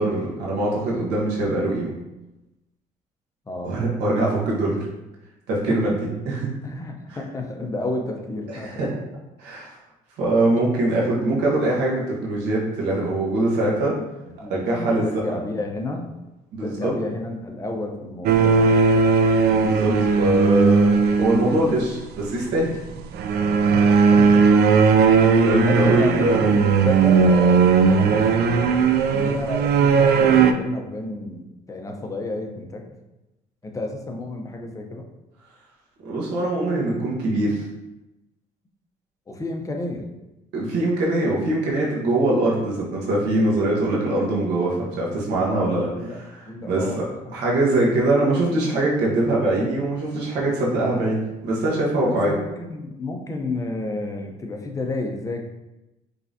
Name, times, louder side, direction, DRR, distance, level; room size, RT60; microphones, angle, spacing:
voice 1, 0.0-1.9 3.6-4.9 5.5-6.0 6.2-6.5 8.5-8.9 9.4-9.7 10.2-14.0 14.5-15.1 16.5-16.9 19.5-22.8 25.1-26.4 36.0-37.6 40.5-45.9 46.6-47.0 47.3-52.3, right 2 dB, 85° right, -4 dB, 1.4 m, -22 dB
voice 2, 3.5-3.8 5.7-5.8 6.6-8.9 14.4-16.1 16.6-18.8 23.7-24.5 25.6-28.5 29.1-32.9 33.6-35.1 39.3-40.1 45.5-46.2 46.5-47.1 52.0-55.4, left 2 dB, 20° left, 2 dB, 0.7 m, -31 dB
sound 1, 18.3-21.8 23.1-30.5, right 5 dB, 70° right, 0.4 m, -17 dB
5.2 x 3.3 x 2.7 m, 0.99 s
cardioid pair, 110°, 17 cm